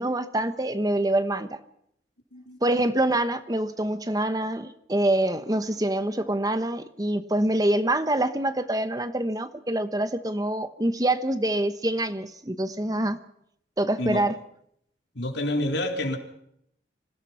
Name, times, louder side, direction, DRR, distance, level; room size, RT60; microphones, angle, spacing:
voice 1, 0.0-1.6 2.6-13.2 13.8-14.3, right 1 dB, 20° right, 11 dB, 1.0 m, -25 dB
voice 2, 15.2-16.2, left 1 dB, 75° left, 4 dB, 3.7 m, -28 dB
26.0 x 17.0 x 5.8 m, 0.71 s
head